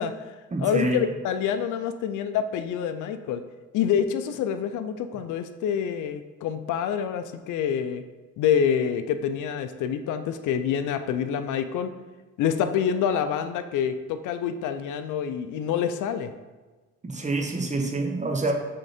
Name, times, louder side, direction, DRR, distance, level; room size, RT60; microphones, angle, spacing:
voice 1, 0.0-3.4 3.7-8.0 8.4-11.9 12.4-16.3, left 8 dB, 85° left, 10 dB, 0.5 m, -27 dB
voice 2, 0.5-1.0 17.0-18.5, right 2 dB, 25° right, 2 dB, 1.1 m, -27 dB
6.4 x 3.7 x 4.3 m, 1.2 s
cardioid pair, 90°, 30 cm